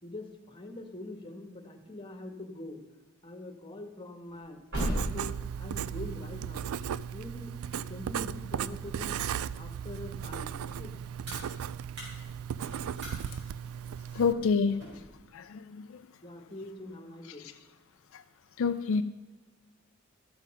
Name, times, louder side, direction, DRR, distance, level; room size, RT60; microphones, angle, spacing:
voice 1, 0.0-2.8 3.2-6.7 7.1-9.2 9.5-10.9 16.2-17.5, left 1 dB, 25° left, 4 dB, 1.4 m, -44 dB
sound 1, 4.2-9.3 9.7-15.1, equal, 60° right, 4.1 m, -41 dB
Writing, 4.7-14.3, right 8 dB, 85° right, 0.4 m, -36 dB
voice 2, 14.1-14.8 15.3-16.0 18.1-18.2 18.6-19.0, left 5 dB, 65° left, 9 dB, 0.4 m, -28 dB
12.5 x 7.4 x 5.3 m, 1.2 s
head